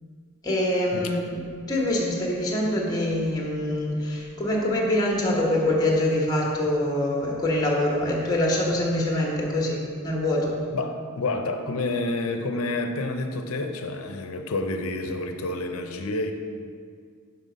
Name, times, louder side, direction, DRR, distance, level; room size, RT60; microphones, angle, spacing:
voice 1, 0.4-10.5, left 1 dB, 15° left, -2 dB, 1.2 m, -25 dB
voice 2, 10.7-16.3, left 2 dB, 70° left, 6 dB, 0.6 m, -29 dB
5.8 x 5.5 x 5.1 m, 2.1 s
head